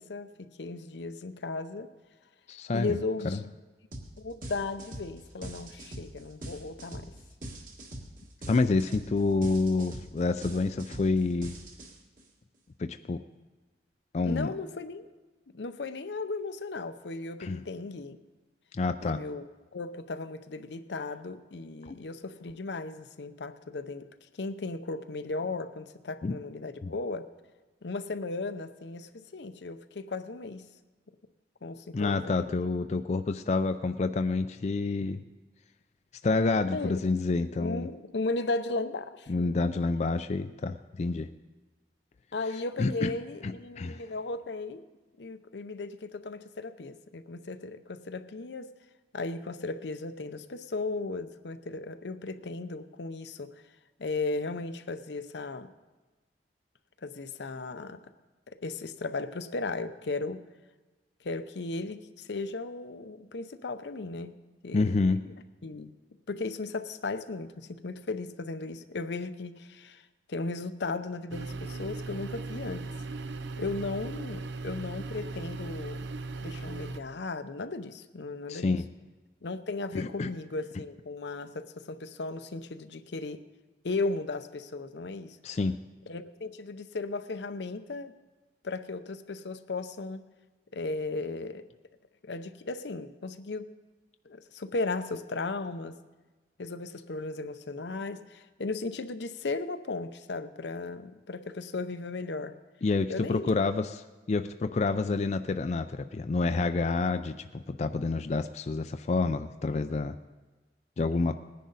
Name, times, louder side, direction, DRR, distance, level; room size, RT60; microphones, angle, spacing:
voice 1, 0.0-1.9 2.7-3.5 4.2-7.1 14.2-15.1 15.5-18.2 19.0-19.4 19.7-24.1 24.4-27.3 27.8-30.7 31.6-32.5 36.7-37.0 37.6-39.5 42.3-44.8 45.2-48.7 49.1-53.6 54.0-55.7 57.0-58.0 58.6-60.4 61.2-64.4 64.6-65.4 65.6-65.9 66.3-72.9 73.6-76.1 76.4-78.8 79.4-83.4 83.8-85.4 86.1-88.1 88.6-90.3 90.7-91.7 92.2-93.7 94.2-96.0 96.6-102.5 103.1-103.8, left 3 dB, 80° left, 10 dB, 0.7 m, -36 dB
voice 2, 2.5-3.0 8.5-11.5 12.8-13.2 14.1-14.5 17.4-17.6 18.7-19.2 21.8-22.0 26.2-26.3 26.8-26.9 31.9-35.2 36.2-37.9 39.3-41.3 42.8-43.1 43.4-44.0 64.7-65.2 78.5-78.8 79.9-80.3 85.4-85.7 102.8-110.1 111.0-111.4, left 3 dB, 40° left, 9 dB, 0.4 m, -28 dB
sound 1, 3.9-4.1 4.4-12.2, right 1 dB, 50° right, 1.7 m, -42 dB
sound 2, 71.3-77.0, right 3 dB, 90° right, 0.6 m, -38 dB
19.0 x 10.0 x 4.0 m, 1.2 s
head